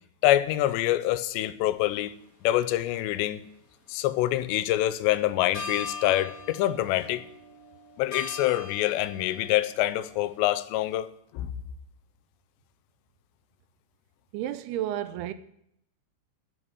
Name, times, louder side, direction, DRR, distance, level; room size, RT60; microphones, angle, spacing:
voice 1, 0.2-2.1 2.4-3.4 3.9-7.3 8.0-11.1 11.3-11.5, left 14 dB, 90° left, 2.9 m, -25 dB
sound 1, 1.8-2.0 2.7-3.7 5.1-5.2 5.5-10.4, left 4 dB, 25° left, 2.9 m, -41 dB
voice 2, 14.3-15.3, right 12 dB, 80° right, 2.5 m, -31 dB
12.5 x 6.2 x 9.6 m
omnidirectional pair, 4.9 m